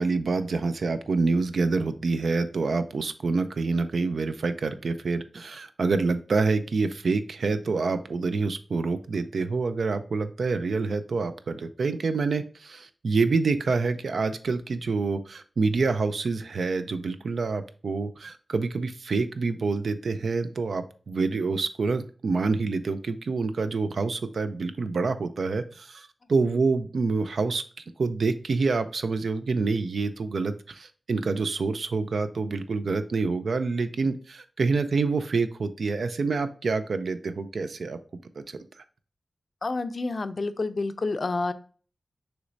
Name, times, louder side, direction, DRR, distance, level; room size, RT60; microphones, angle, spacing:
voice 1, 0.0-27.6 28.0-38.0 38.5-38.6, right 4 dB, 85° right, 10 dB, 0.4 m, -27 dB
voice 2, 39.6-41.5, left 3 dB, 55° left, 11 dB, 0.4 m, -29 dB
6.2 x 3.0 x 2.6 m, 0.41 s
wide cardioid pair, 90°, 0 cm